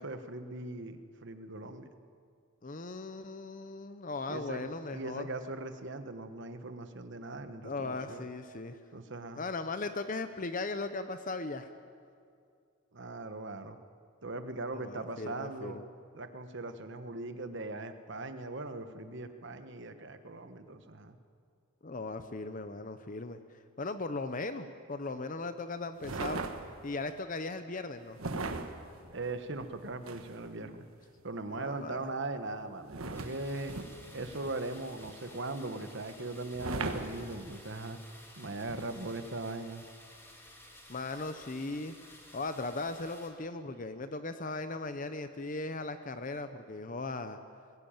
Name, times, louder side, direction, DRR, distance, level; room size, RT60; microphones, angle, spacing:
voice 1, 0.0-1.9 4.3-4.6 4.9-8.3 8.9-9.4 12.9-13.8 14.2-15.8 16.1-21.2 29.1-30.9 31.2-33.7 34.1-38.0 38.4-39.8, right 2 dB, 55° right, 9 dB, 1.3 m, -40 dB
voice 2, 2.6-5.3 7.6-8.8 9.4-11.7 14.7-15.8 21.8-23.4 23.8-26.4 26.8-28.2 31.5-32.1 40.9-41.9 42.3-47.4, left 3 dB, 40° left, 10 dB, 0.7 m, -38 dB
sound 1, 26.0-27.0 28.2-30.5 32.9-34.8 36.5-37.7 38.7-38.9, right 3 dB, 80° right, 1.4 m, -39 dB
sound 2, 33.1-43.3, left 1 dB, 10° left, 2.4 m, -54 dB
21.5 x 16.5 x 8.9 m, 2.4 s
head